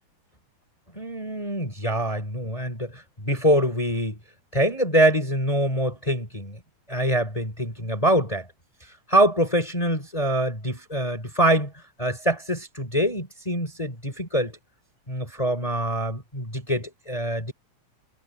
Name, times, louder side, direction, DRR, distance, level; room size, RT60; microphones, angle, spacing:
voice 1, 0.9-4.2 4.5-6.6 6.9-8.5 9.1-11.7 12.0-14.6 15.1-17.5, right 1 dB, 10° left, 3.8 m, -24 dB
omnidirectional pair, 3.6 m